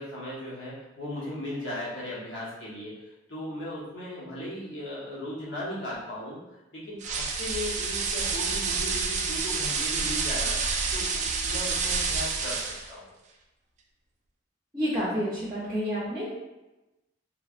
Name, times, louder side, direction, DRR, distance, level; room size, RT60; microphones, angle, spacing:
voice 1, 0.0-6.4 6.7-12.6 12.9-13.1, left 1 dB, 70° left, -7 dB, 1.1 m, -37 dB
sound 1, 7.0-12.9, right 4 dB, 35° right, 0.3 m, -28 dB
voice 2, 14.7-16.3, equal, 20° right, -7 dB, 0.7 m, -29 dB
3.2 x 3.0 x 2.5 m, 1.0 s
head